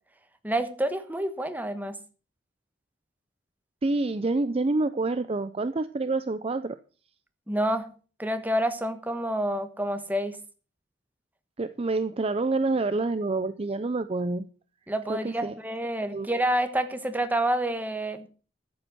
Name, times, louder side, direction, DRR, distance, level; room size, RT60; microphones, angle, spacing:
voice 1, 0.4-2.0 7.5-7.9 8.2-10.4 14.9-18.3, right 1 dB, 10° right, 8 dB, 1.3 m, -28 dB
voice 2, 3.8-6.8 11.6-14.4 15.1-15.5 16.1-16.3, right 3 dB, 35° right, 12 dB, 0.5 m, -27 dB
13.0 x 7.9 x 6.2 m, 0.38 s
head